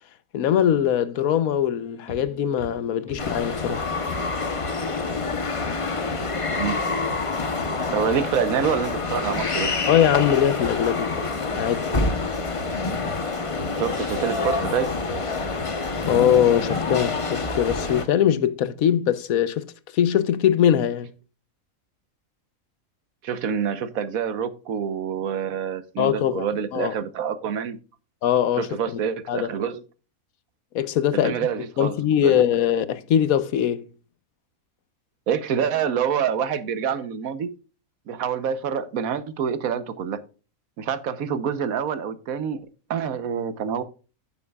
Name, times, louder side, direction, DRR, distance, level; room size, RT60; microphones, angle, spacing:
voice 1, 0.3-3.9 9.9-11.2 11.6-11.9 16.0-21.1 26.0-26.5 26.7-26.9 28.2-29.0 29.3-29.5 30.7-31.3 31.8-33.8, left 9 dB, 90° left, 1.2 m, -21 dB
sound 1, 1.8-16.4, left 1 dB, 5° left, 5.7 m, -42 dB
sound 2, 3.2-18.0, left 3 dB, 25° left, 0.9 m, -27 dB
voice 2, 6.5-6.9 7.9-9.7 13.7-14.9 23.2-27.8 28.6-29.8 31.2-32.4 35.3-37.5 38.1-40.2 40.8-42.6 42.9-43.8, right 7 dB, 85° right, 1.3 m, -27 dB
15.0 x 6.8 x 2.3 m
omnidirectional pair, 1.4 m